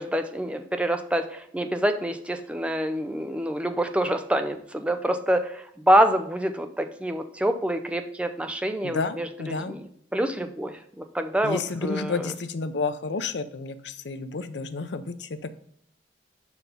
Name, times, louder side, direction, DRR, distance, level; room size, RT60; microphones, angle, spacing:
voice 1, 0.0-9.8 10.1-12.2, right 1 dB, 5° right, 7 dB, 0.5 m, -26 dB
voice 2, 8.8-9.8 11.4-15.5, left 4 dB, 75° left, 11 dB, 0.6 m, -31 dB
5.5 x 4.7 x 5.1 m, 0.67 s
head